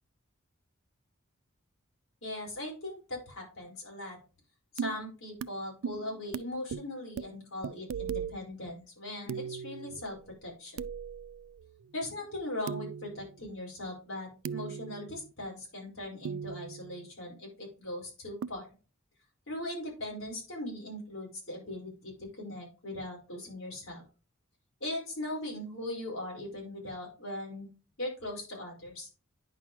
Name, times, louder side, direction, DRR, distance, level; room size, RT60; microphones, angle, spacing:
voice 1, 2.2-4.2 4.7-10.8 11.9-18.7 19.5-24.0 24.8-27.7 28.0-29.1, left 1 dB, 65° left, -1 dB, 4.6 m, -39 dB
sound 1, 4.8-5.0 5.4-5.5 5.8-6.4 6.7-6.9 7.2-7.3 7.6-8.4 9.3-10.2 10.8-11.8 12.7-13.4 14.4-15.3 16.2-17.1 18.4-18.5, right 7 dB, 65° right, 0.3 m, -38 dB
9.6 x 5.7 x 3.0 m, 0.34 s
head